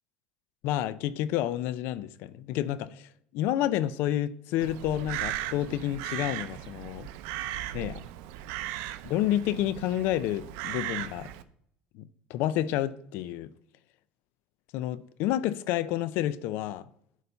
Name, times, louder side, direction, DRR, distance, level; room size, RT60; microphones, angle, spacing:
voice 1, 0.6-7.1 7.7-8.0 9.0-11.3 11.9-13.5 14.7-16.8, left 12 dB, 70° left, 0.4 m, -30 dB
Crow, 4.6-11.4, right 13 dB, 80° right, 0.5 m, -37 dB
11.0 x 4.1 x 5.6 m
cardioid pair, 125°, 4 cm